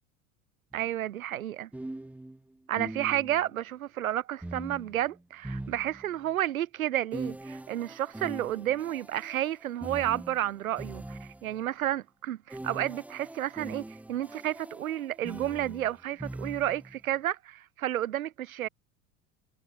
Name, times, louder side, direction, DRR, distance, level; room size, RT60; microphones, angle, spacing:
sound 1, 0.7-0.9 1.7-3.5 4.4-6.3 7.1-11.6 12.5-17.0, right 1 dB, 5° right, 1.0 m, -42 dB
voice 1, 0.7-1.7 2.7-18.7, right 12 dB, 75° right, 0.5 m, -31 dB
figure-of-eight pair, 80°, 42 cm